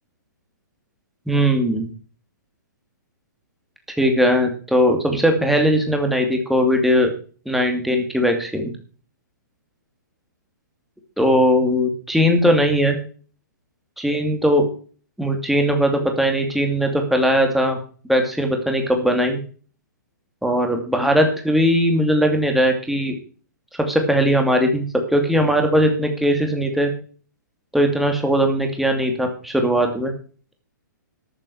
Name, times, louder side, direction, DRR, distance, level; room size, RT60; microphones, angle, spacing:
voice 1, 1.3-1.9 4.0-7.1 7.5-8.7 11.2-13.0 14.0-14.6 15.2-17.8 18.1-19.4 20.4-23.2 23.9-24.8 25.1-26.9 27.7-30.1, equal, ahead, 3 dB, 2.5 m, -19 dB
13.5 x 7.7 x 6.5 m, 0.42 s
hypercardioid pair, 140°, 10 cm